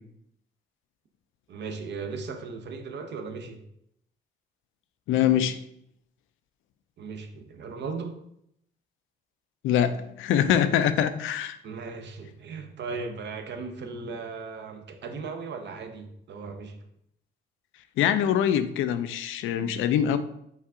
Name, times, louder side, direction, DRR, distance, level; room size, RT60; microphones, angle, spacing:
voice 1, 1.5-3.6 7.0-8.2 11.6-16.8, right 4 dB, 60° right, 6 dB, 0.7 m, -37 dB
voice 2, 5.1-5.6 9.6-11.6 18.0-20.2, left 9 dB, 80° left, 11 dB, 0.4 m, -24 dB
5.4 x 2.4 x 3.6 m, 0.75 s
cardioid pair, 90°, 20 cm